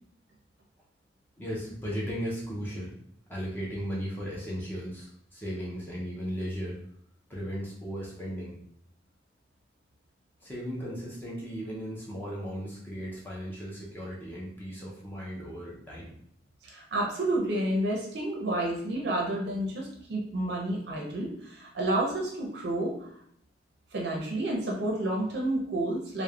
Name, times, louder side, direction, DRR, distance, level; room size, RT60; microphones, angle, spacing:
voice 1, 1.4-2.9 3.3-6.8 7.3-8.6 10.4-16.1, equal, 10° left, -5 dB, 0.4 m, -36 dB
voice 2, 16.6-23.1 23.9-26.2, right 1 dB, 60° right, -2 dB, 0.5 m, -30 dB
3.1 x 2.0 x 2.2 m, 0.67 s
head